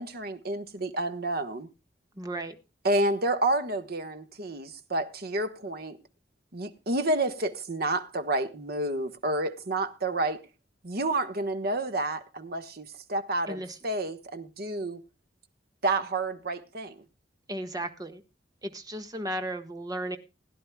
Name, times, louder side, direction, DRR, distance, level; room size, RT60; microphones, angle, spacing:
voice 1, 0.0-1.7 2.8-6.0 6.5-10.4 10.8-15.0 15.8-16.9, right 2 dB, 55° right, 1.3 m, -29 dB
voice 2, 2.2-2.6 13.5-13.8 17.5-18.2 18.6-20.2, right 1 dB, 20° right, 1.3 m, -35 dB
20.5 x 11.0 x 2.2 m
head